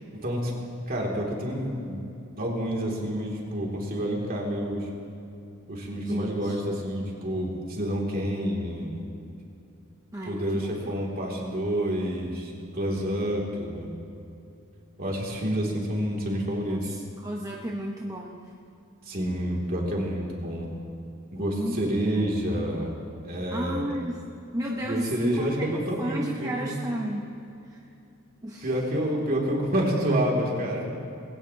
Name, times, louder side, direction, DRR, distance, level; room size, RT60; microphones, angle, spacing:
voice 1, 0.9-2.0 2.4-4.9 5.7-9.0 10.3-14.0 15.0-16.9 19.1-20.7 21.3-22.9 23.2-23.9 24.8-26.8 28.6-30.9, equal, 45° right, -2 dB, 2.8 m, -28 dB
voice 2, 5.9-6.6 10.1-10.8 11.3-11.6 16.7-18.5 21.4-22.3 23.5-24.2 24.5-27.3 27.6-27.8 28.4-28.7, right 1 dB, 15° right, -2 dB, 1.0 m, -33 dB
21.0 x 17.0 x 2.9 m, 2.8 s
head